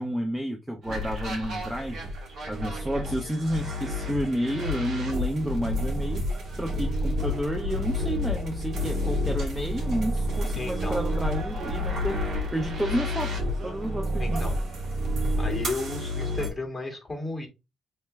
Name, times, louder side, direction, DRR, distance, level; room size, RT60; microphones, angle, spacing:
voice 1, 0.0-2.1 2.5-6.3 6.6-14.5, equal, 10° right, 0.5 m, -31 dB
sound 1, 0.8-16.5, left 1 dB, 60° right, 1.8 m, -30 dB
voice 2, 10.5-11.0 14.2-14.6 15.4-17.5, left 2 dB, 15° left, 1.8 m, -34 dB
3.3 x 3.0 x 3.2 m
cardioid pair, 90°, 0 cm